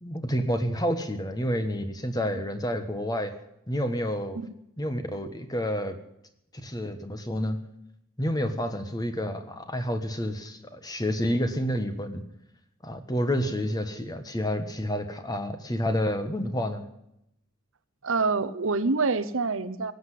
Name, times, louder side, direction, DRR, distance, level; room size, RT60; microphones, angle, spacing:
voice 1, 0.0-3.3 3.7-4.4 4.8-6.0 6.6-7.6 8.2-12.2 12.8-16.9, equal, 20° left, 8 dB, 1.3 m, -29 dB
voice 2, 18.0-19.9, right 4 dB, 65° right, 12 dB, 0.8 m, -26 dB
17.5 x 7.9 x 9.9 m, 0.79 s
head